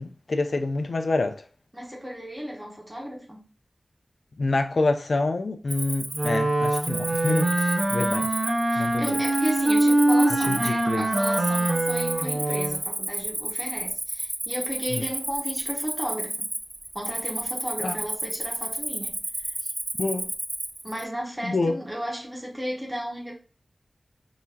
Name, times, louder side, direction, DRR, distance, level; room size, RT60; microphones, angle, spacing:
voice 1, 0.0-1.4 4.4-8.3 8.8-9.0 10.5-11.1 14.9-15.0 17.8-18.0 20.0-20.3 21.4-21.8, left 3 dB, 75° left, 0.4 m, -27 dB
voice 2, 1.7-3.5 8.7-16.5 16.9-19.7 20.8-23.3, equal, 5° right, 1.0 m, -34 dB
Cricket, 5.7-21.0, right 1 dB, 30° right, 0.3 m, -32 dB
Wind instrument woodwind instrument, 6.1-12.8, right 1 dB, 85° right, 0.8 m, -23 dB
3.8 x 3.0 x 2.7 m
wide cardioid pair, 60°, 0 cm